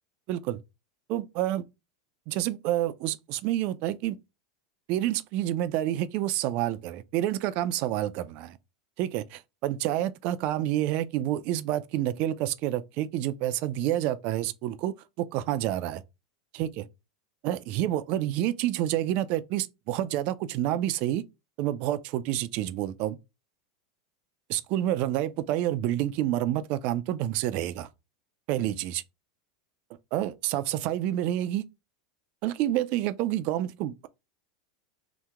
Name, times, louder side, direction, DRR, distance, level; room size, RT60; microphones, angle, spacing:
voice 1, 0.3-0.6 1.1-1.6 2.3-4.2 4.9-8.6 9.0-16.0 16.5-16.8 17.4-21.2 21.6-23.2 24.5-27.9 28.5-29.0 30.1-31.6 32.4-34.1, right 13 dB, 55° right, 0.3 m, -28 dB
2.9 x 2.1 x 3.4 m
supercardioid pair, 120°, 3 cm